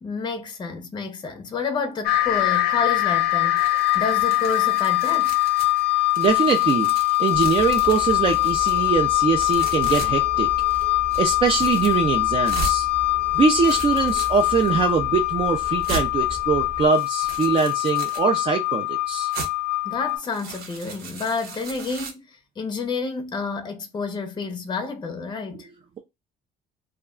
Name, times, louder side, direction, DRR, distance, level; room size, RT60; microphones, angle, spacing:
voice 1, 0.0-5.4 19.8-25.7, left 4 dB, 25° left, 0.6 m, -30 dB
sound 1, 2.0-20.2, left 19 dB, 70° left, 0.5 m, -23 dB
sound 2, 3.6-5.8 6.1-8.9 9.4-10.1 10.6-10.8 11.1-12.0 12.4-12.8 13.4-14.7 15.3-15.4 15.8-16.1 16.8-18.3 19.3-19.5 20.1-22.1, right 4 dB, 65° right, 0.8 m, -37 dB
voice 2, 6.2-10.5 11.2-12.9 13.3-19.3, right 5 dB, 35° right, 0.4 m, -22 dB
sound 3, 7.3-16.9, equal, 10° right, 0.7 m, -38 dB
2.2 x 2.2 x 3.5 m
cardioid pair, 110°, 17 cm